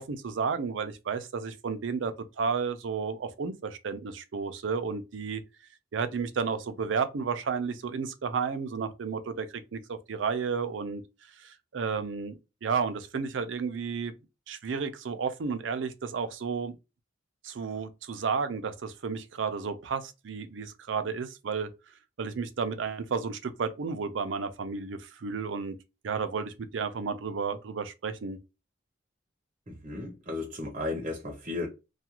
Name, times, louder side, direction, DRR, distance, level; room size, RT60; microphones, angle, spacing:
voice 1, 0.0-5.4 5.9-11.0 11.4-14.1 14.5-16.8 17.4-21.7 22.2-25.7 26.0-28.4, right 5 dB, 80° right, 0.5 m, -32 dB
voice 2, 29.7-31.7, left 2 dB, 40° right, 0.6 m, -34 dB
2.4 x 2.2 x 2.9 m
head